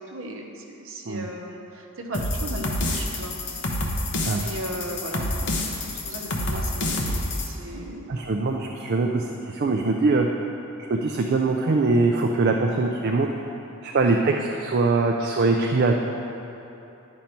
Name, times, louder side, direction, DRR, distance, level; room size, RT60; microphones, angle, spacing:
voice 1, 0.0-3.4 4.4-8.2 9.0-9.1, right 1 dB, 60° right, 1 dB, 0.9 m, -37 dB
sound 1, 2.1-7.5, left 1 dB, 55° left, 0.9 m, -28 dB
voice 2, 8.1-10.3 10.9-13.3 13.8-15.9, right 3 dB, 45° right, 2 dB, 0.4 m, -22 dB
10.5 x 5.3 x 4.4 m, 3.0 s
head